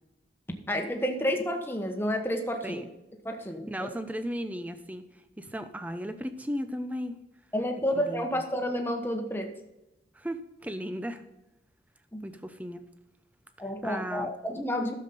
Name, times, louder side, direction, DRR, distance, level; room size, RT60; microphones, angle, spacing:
voice 1, 0.7-2.8 3.2-3.9 7.5-9.5 12.1-12.2 13.6-14.9, equal, 10° left, 4 dB, 1.2 m, -30 dB
voice 2, 3.7-7.2 7.9-8.4 10.1-11.2 12.2-12.8 13.8-14.3, equal, 10° right, 9 dB, 0.7 m, -36 dB
13.0 x 7.2 x 4.1 m, 0.95 s
head